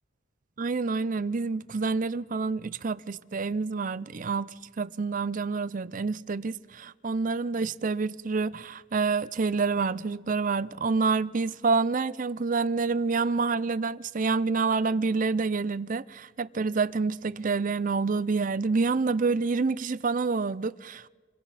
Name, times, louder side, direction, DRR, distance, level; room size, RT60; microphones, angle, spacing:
voice 1, 0.6-21.1, right 4 dB, 45° right, 0.5 m, -28 dB
27.5 x 22.5 x 4.2 m
head